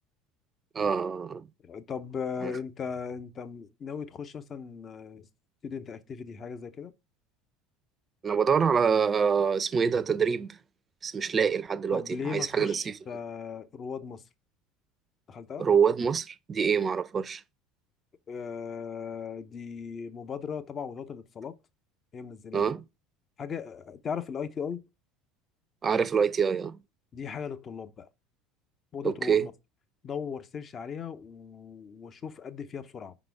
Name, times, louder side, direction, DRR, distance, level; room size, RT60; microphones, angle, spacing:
voice 1, 0.7-1.4 2.4-2.5 8.2-10.6 11.0-12.9 15.6-17.4 22.5-22.8 25.8-26.8 29.0-29.5, right 6 dB, 30° right, 0.6 m, -26 dB
voice 2, 1.6-5.3 5.6-6.9 11.9-14.2 15.3-15.7 18.3-21.5 22.1-22.7 23.4-24.8 27.1-28.1 28.9-29.5 30.0-33.1, left 6 dB, 40° left, 0.7 m, -37 dB
5.1 x 3.9 x 4.6 m
hypercardioid pair, 80°, 0 cm